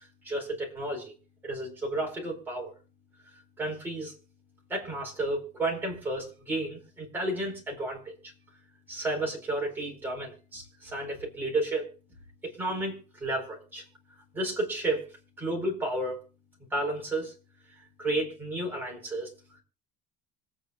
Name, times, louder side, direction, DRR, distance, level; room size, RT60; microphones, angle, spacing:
voice 1, 0.2-1.1 1.4-2.7 3.6-4.1 4.7-8.1 8.9-11.9 12.4-13.8 14.3-15.0 15.4-16.2 16.7-17.3 18.0-19.3, right 2 dB, 10° right, -1 dB, 4.5 m, -32 dB
25.5 x 8.9 x 2.4 m, 0.34 s
cardioid pair, 180°, 19 cm